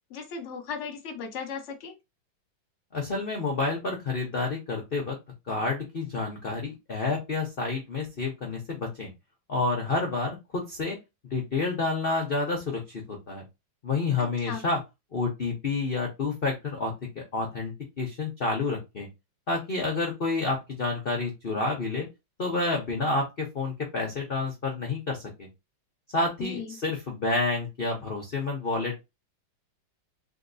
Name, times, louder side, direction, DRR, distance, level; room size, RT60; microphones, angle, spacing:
voice 1, 0.1-2.0 14.2-14.6 26.4-26.8, left 6 dB, 50° left, 0.9 m, -36 dB
voice 2, 2.9-5.2 5.5-9.1 9.5-11.0 11.3-13.4 13.8-14.8 15.1-19.1 19.5-22.1 22.4-25.5 26.1-29.0, left 3 dB, 65° left, 0.5 m, -29 dB
3.6 x 2.8 x 2.6 m
omnidirectional pair, 2.2 m